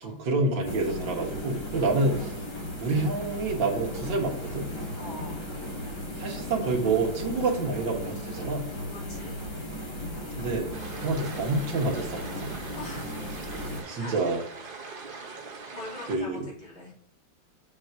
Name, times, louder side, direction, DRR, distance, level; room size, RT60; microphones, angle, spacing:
voice 1, 0.0-2.5 2.8-4.7 6.2-8.7 10.4-10.7 11.0-12.6 13.9-14.4 16.1-16.5, right 3 dB, 65° right, 0 dB, 2.0 m, -28 dB
sound 1, 0.6-13.8, left 1 dB, 40° left, 2.2 m, -36 dB
voice 2, 5.0-5.5 8.8-9.4 12.8-13.2 13.9-14.1 15.7-16.9, left 2 dB, 70° left, -6 dB, 3.9 m, -43 dB
sound 2, 10.7-16.2, right 4 dB, 40° right, 0.8 m, -42 dB
7.0 x 4.0 x 5.7 m, 0.66 s
omnidirectional pair, 2.3 m